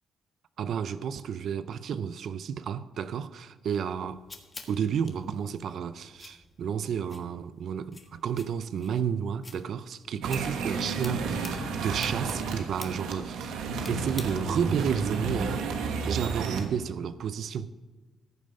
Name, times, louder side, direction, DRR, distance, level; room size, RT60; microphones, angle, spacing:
voice 1, 0.6-4.2 4.7-13.5 13.9-15.7 16.0-17.7, right 7 dB, 65° right, 0.5 m, -31 dB
sound 1, 3.7-14.7, left 3 dB, 30° left, 1.5 m, -50 dB
sound 2, 10.2-16.7, right 4 dB, 85° right, 1.3 m, -32 dB
14.0 x 7.4 x 5.3 m
cardioid pair, 90°, 0 cm